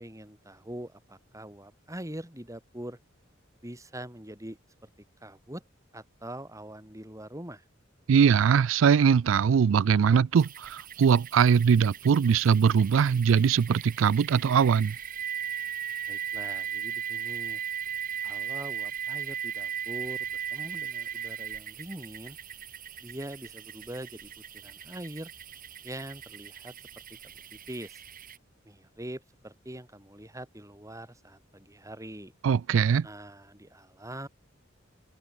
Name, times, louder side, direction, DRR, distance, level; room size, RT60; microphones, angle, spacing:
voice 1, 0.0-3.0 3.6-4.9 5.2-5.6 5.9-7.6 16.1-17.6 18.2-22.4 23.0-25.3 25.8-26.7 27.2-28.0 28.6-32.3 33.0-34.3, right 1 dB, 15° right, 6.4 m, -43 dB
voice 2, 8.1-15.0 32.4-33.1, right 7 dB, 70° right, 0.4 m, -21 dB
sound 1, 10.4-28.4, right 9 dB, 45° right, 3.2 m, -38 dB
open air
head